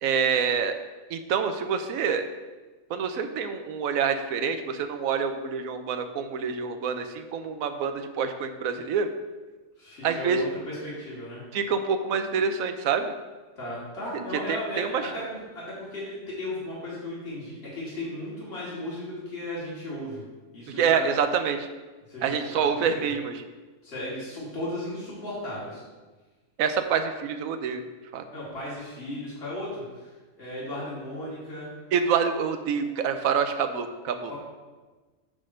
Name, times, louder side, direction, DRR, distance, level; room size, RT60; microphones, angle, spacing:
voice 1, 0.0-0.7 1.1-2.3 2.9-9.1 10.0-10.4 11.5-13.1 14.5-15.1 20.8-21.7 22.2-23.4 26.6-27.8 28.1-28.2 31.9-34.3, right 6 dB, 85° right, 8 dB, 1.1 m, -26 dB
voice 2, 9.8-11.4 13.6-20.2 20.5-21.1 22.1-23.1 23.8-25.8 28.3-31.7 34.3-34.4, left 1 dB, 50° left, -7 dB, 2.6 m, -36 dB
8.5 x 3.8 x 6.3 m, 1.3 s
omnidirectional pair, 1.4 m